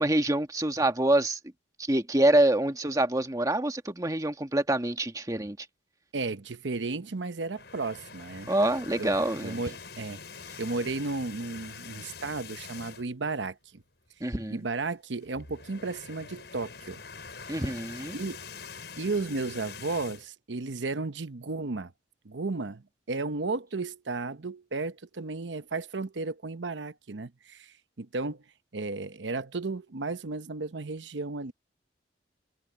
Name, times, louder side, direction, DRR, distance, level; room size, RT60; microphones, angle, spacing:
voice 1, 0.0-1.4 1.8-5.6 8.5-9.6 14.2-14.6 17.5-18.2, right 1 dB, 20° right, 1.3 m, -26 dB
voice 2, 6.1-8.5 9.0-9.1 9.4-10.2 10.6-13.8 14.5-17.0 17.5-17.6 18.1-18.4 19.0-21.9 22.2-28.4 28.7-31.5, right 3 dB, 85° right, 0.9 m, -34 dB
sound 1, 7.4-13.3 13.6-13.8 14.1-14.2 15.2-20.3, left 5 dB, 65° left, 7.2 m, -44 dB
head